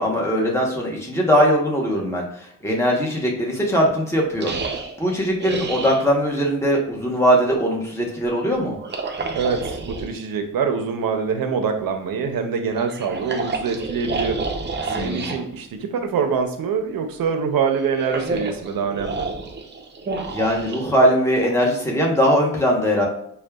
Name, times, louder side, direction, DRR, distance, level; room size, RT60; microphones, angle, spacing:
voice 1, 0.0-2.2 2.6-4.5 5.0-8.8 14.9-15.3 20.2-23.1, equal, 10° left, -2 dB, 0.9 m, -20 dB
sound 1, 4.4-6.1 8.8-10.1 12.7-15.4 17.6-21.5, right 3 dB, 35° right, 0.5 m, -29 dB
voice 2, 9.3-14.4 14.9-19.3, right 6 dB, 90° right, 5 dB, 0.6 m, -24 dB
6.2 x 2.3 x 2.2 m, 0.71 s
wide cardioid pair, 115°, 33 cm